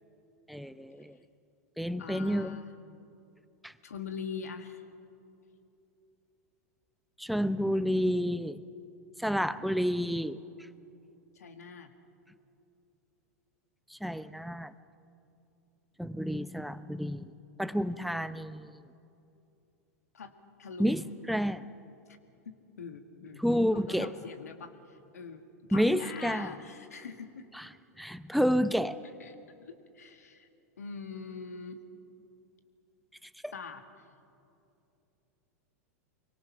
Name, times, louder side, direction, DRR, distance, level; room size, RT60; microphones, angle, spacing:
voice 1, 0.5-1.2 1.8-2.6 3.6-3.7 7.2-8.6 9.2-10.4 13.9-14.7 16.0-17.3 17.6-18.7 20.8-21.6 23.4-24.1 25.7-26.5 27.5-27.7 28.0-29.0 33.4-33.5, equal, ahead, 13 dB, 0.7 m, -30 dB
voice 2, 2.0-2.7 3.8-4.8 11.4-11.9 20.1-21.1 22.5-23.4 23.7-25.4 25.7-27.5 29.2-30.5 30.8-31.8 33.5-33.8, left 6 dB, 80° left, 8 dB, 1.9 m, -43 dB
25.0 x 23.0 x 5.9 m, 2.7 s
hypercardioid pair, 100°, 8 cm